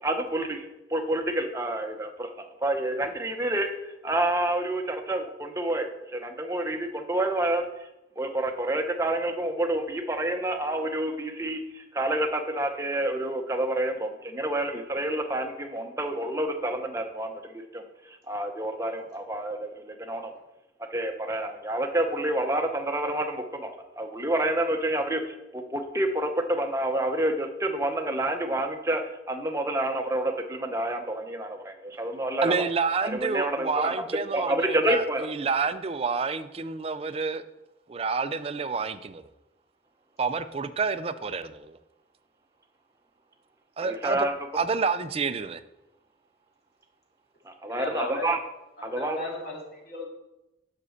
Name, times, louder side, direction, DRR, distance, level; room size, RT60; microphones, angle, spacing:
voice 1, 0.0-3.7 4.0-7.6 8.2-20.3 20.9-29.0 29.3-32.7 33.0-33.9 34.3-35.3 43.8-44.3 47.4-48.4 48.8-49.2, right 1 dB, 15° right, 4 dB, 0.8 m, -28 dB
voice 2, 32.4-37.4 37.9-39.2 40.2-41.8 43.8-44.3 44.5-45.6, right 4 dB, 30° right, 12 dB, 0.4 m, -29 dB
voice 3, 47.6-48.3 48.8-50.1, left 3 dB, 55° left, -2 dB, 2.5 m, -35 dB
7.5 x 5.4 x 6.5 m, 0.95 s
head